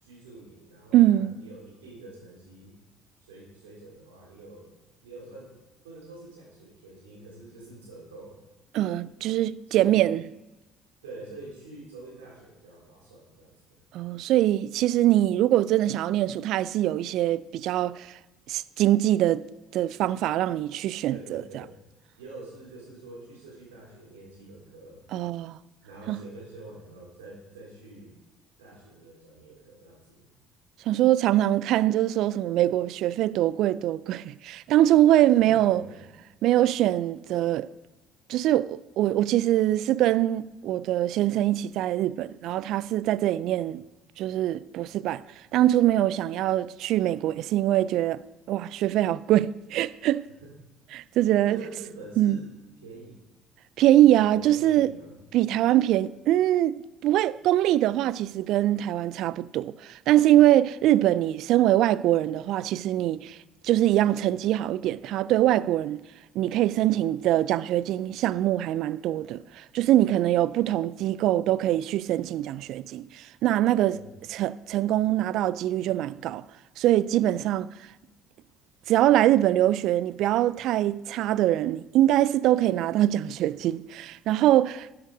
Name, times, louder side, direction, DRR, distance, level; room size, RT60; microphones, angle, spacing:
voice 1, 0.0-2.7 3.2-4.7 5.0-5.6 5.8-8.4 9.7-10.0 11.0-13.8 21.1-21.8 22.2-25.0 25.8-28.2 28.6-30.3 35.3-36.1 50.4-50.6 51.4-52.5 52.8-53.2 53.8-55.1 73.9-74.2, right 2 dB, 80° right, 4.1 m, -46 dB
voice 2, 0.9-1.3 8.7-10.2 13.9-18.2 18.5-19.4 19.7-21.4 25.1-25.6 26.1-26.2 30.9-35.8 36.4-37.7 38.3-43.8 44.2-45.2 45.5-48.2 48.5-50.3 50.9-51.6 52.2-52.4 53.8-54.9 55.3-63.4 63.6-66.0 66.4-74.0 74.3-76.4 76.8-77.7 78.9-84.9, right 13 dB, 65° right, 0.3 m, -23 dB
13.0 x 7.8 x 5.0 m
hypercardioid pair, 55°, 0 cm